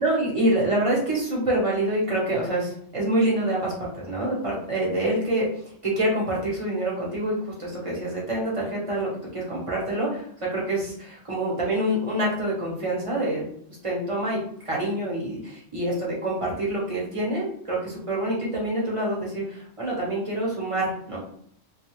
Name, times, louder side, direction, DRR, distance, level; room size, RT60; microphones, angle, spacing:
voice 1, 0.0-5.5 5.8-13.4 13.8-14.4 14.6-21.2, right 1 dB, 35° right, -5 dB, 0.7 m, -26 dB
2.3 x 2.0 x 2.9 m, 0.64 s
omnidirectional pair, 1.2 m